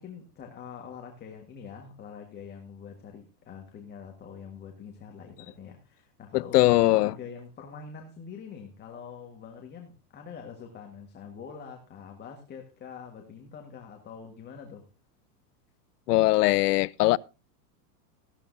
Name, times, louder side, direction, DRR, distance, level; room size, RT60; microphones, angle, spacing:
voice 1, 0.0-6.6 6.9-14.8, left 6 dB, 20° left, 1.6 m, -44 dB
voice 2, 6.3-7.1 16.1-17.2, left 18 dB, 75° left, 0.6 m, -21 dB
15.0 x 12.5 x 2.7 m
supercardioid pair, 145°, 47 cm